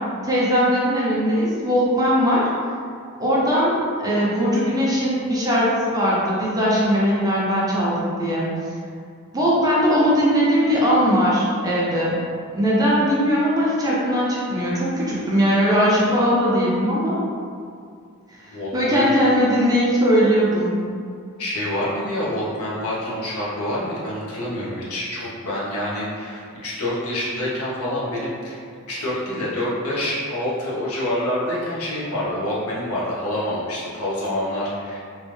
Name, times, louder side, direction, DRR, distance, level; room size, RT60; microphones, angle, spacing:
voice 1, 0.2-2.5 3.2-8.5 9.3-12.2 12.5-17.2 18.5-20.8, equal, 15° right, -7 dB, 0.6 m, -20 dB
voice 2, 18.5-19.1 21.4-28.6 28.9-35.0, left 1 dB, 75° left, -7 dB, 0.9 m, -27 dB
3.1 x 2.5 x 3.1 m, 2.3 s
head